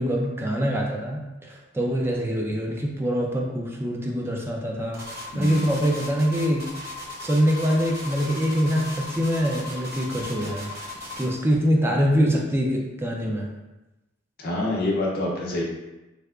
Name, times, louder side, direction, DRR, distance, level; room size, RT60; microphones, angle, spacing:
voice 1, 0.0-5.0 5.3-6.6 7.2-10.7 11.2-13.5, equal, 10° right, -1 dB, 0.4 m, -24 dB
sound 1, 4.9-11.4, left 2 dB, 55° right, 0.8 m, -37 dB
voice 2, 5.3-5.6 14.4-15.6, left 2 dB, 50° left, -3 dB, 0.6 m, -26 dB
3.3 x 2.8 x 2.4 m, 1.0 s
head